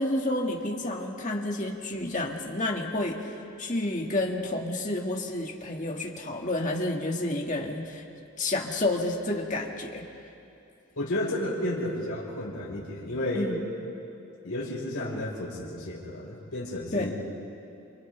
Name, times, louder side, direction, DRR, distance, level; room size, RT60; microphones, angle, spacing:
voice 1, 0.0-3.3 3.6-8.0 8.4-10.0 13.3-13.6 16.9-17.1, left 1 dB, 35° left, 0 dB, 2.0 m, -30 dB
voice 2, 11.0-13.5 14.4-17.3, left 1 dB, 90° left, -4 dB, 4.8 m, -32 dB
29.5 x 29.5 x 3.5 m, 2.7 s
head